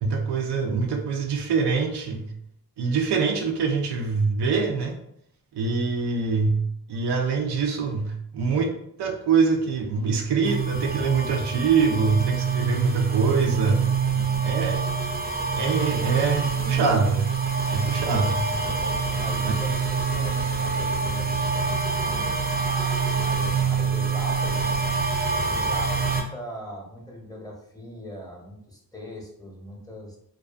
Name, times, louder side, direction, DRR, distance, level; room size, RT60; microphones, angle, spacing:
voice 1, 0.0-2.3 2.8-5.0 5.5-6.6 6.9-8.7 9.0-13.9 14.4-14.8 15.5-17.3 17.7-18.8 19.4-19.5, right 5 dB, 85° right, 2 dB, 0.5 m, -24 dB
sound 1, 10.4-26.2, right 5 dB, 25° right, 0.5 m, -26 dB
voice 2, 14.1-14.5 18.8-24.8 25.3-30.2, equal, 10° left, -1 dB, 0.7 m, -40 dB
2.4 x 2.3 x 2.4 m, 0.71 s
cardioid pair, 55°, 39 cm